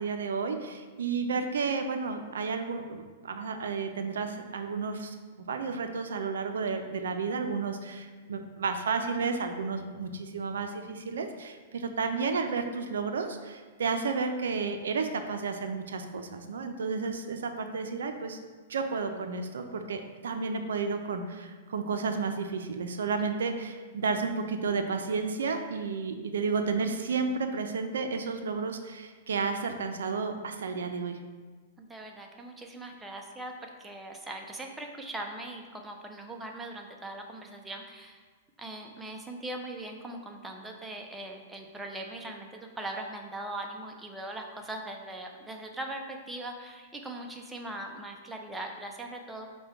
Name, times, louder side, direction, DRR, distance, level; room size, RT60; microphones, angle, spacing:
voice 1, 0.0-5.2 5.5-18.4 18.7-31.2, right 4 dB, 85° right, 6 dB, 0.4 m, -32 dB
voice 2, 31.8-38.2 38.6-49.5, right 1 dB, 10° right, 2 dB, 0.4 m, -40 dB
5.0 x 2.2 x 4.5 m, 1.4 s
hypercardioid pair, 135°, 0 cm